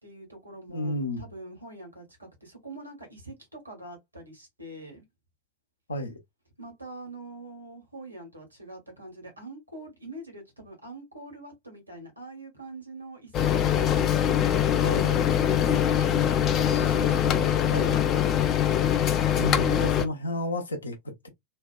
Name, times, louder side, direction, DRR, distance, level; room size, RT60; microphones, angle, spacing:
voice 1, 0.0-5.0 6.6-15.7 16.0-18.3, right 2 dB, 85° right, 1.2 m, -44 dB
voice 2, 0.7-1.3 5.9-6.2 14.8-15.2 17.3-18.0 19.3-21.3, equal, 75° left, 0.7 m, -32 dB
sound 1, 13.3-20.1, left 9 dB, 30° left, 0.4 m, -23 dB
2.7 x 2.2 x 2.2 m
figure-of-eight pair, 90°, 0 cm